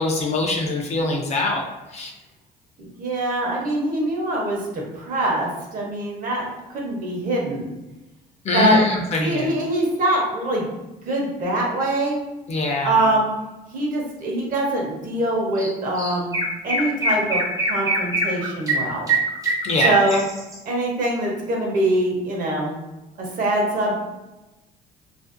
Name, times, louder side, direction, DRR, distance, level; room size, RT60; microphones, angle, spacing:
voice 1, 0.0-1.6 1.9-2.1 8.5-9.5 12.5-12.9 19.6-19.9, left 2 dB, 40° left, 1 dB, 0.5 m, -22 dB
voice 2, 2.8-7.7 8.5-8.8 9.2-10.7 11.1-12.3 12.8-13.3 13.7-19.1 19.8-20.3 20.7-22.8 23.2-23.9, right 1 dB, 55° right, -1 dB, 0.8 m, -23 dB
Chirp tweet, 15.6-15.7 16.0-20.6, right 2 dB, 20° right, 0.5 m, -23 dB
2.5 x 2.0 x 2.5 m, 1.0 s
cardioid pair, 110°, 17 cm